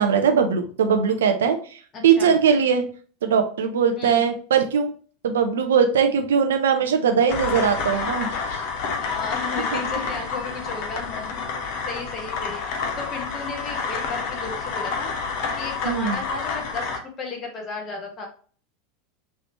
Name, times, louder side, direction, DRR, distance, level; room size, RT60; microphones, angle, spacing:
voice 1, 0.0-2.9 3.2-4.9 5.2-8.7 9.7-9.8 15.8-16.2, right 7 dB, 70° right, 6 dB, 0.6 m, -20 dB
voice 2, 1.9-2.3 4.0-4.2 9.1-15.1 15.6-18.3, left 4 dB, 35° left, 2 dB, 1.3 m, -34 dB
sound 1, 7.3-17.0, left 5 dB, 55° left, 0.8 m, -29 dB
5.5 x 3.0 x 2.9 m, 0.43 s
figure-of-eight pair, 80°, 0 cm